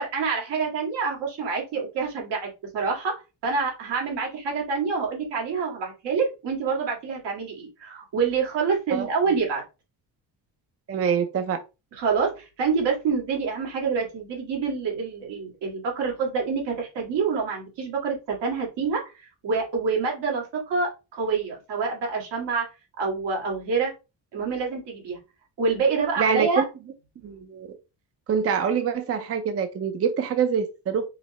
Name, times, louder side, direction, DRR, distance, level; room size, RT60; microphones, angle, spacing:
voice 1, 0.0-3.2 3.4-9.6 11.9-22.7 23.0-23.9 24.3-25.2 25.6-26.6, right 5 dB, 85° right, -1 dB, 2.0 m, -27 dB
voice 2, 10.9-11.6 26.2-26.6 27.2-27.7 28.3-31.1, right 7 dB, 35° right, 8 dB, 0.5 m, -25 dB
4.9 x 2.1 x 4.2 m, 0.28 s
cardioid pair, 110°, 41 cm